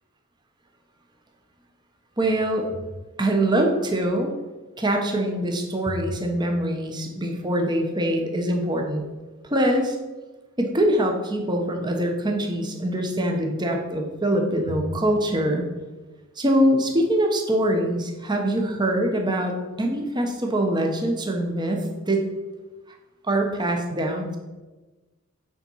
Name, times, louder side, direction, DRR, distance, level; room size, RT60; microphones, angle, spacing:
voice 1, 2.2-2.7 3.2-4.3 4.8-9.1 9.4-9.9 10.6-15.6 16.4-19.5 19.8-22.2 23.2-24.4, right 1 dB, 20° right, 2 dB, 1.0 m, -23 dB
8.8 x 4.4 x 5.6 m, 1.2 s
head